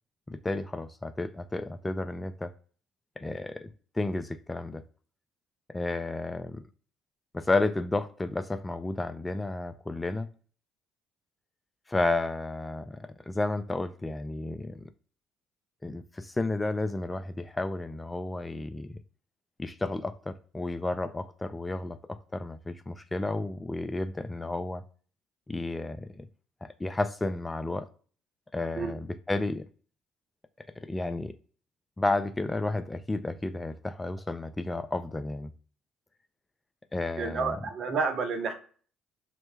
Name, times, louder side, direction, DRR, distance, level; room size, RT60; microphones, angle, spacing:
voice 1, 0.3-2.5 3.2-3.7 3.9-4.8 5.7-6.6 7.3-10.3 11.9-14.9 15.8-19.0 19.6-24.8 25.5-26.3 26.6-27.9 28.5-29.7 30.8-31.3 32.0-35.5 36.9-37.6, left 2 dB, 15° left, 0.4 m, -32 dB
voice 2, 37.2-38.5, right 4 dB, 55° right, 0.9 m, -30 dB
3.0 x 2.0 x 3.3 m
hypercardioid pair, 55°, 0 cm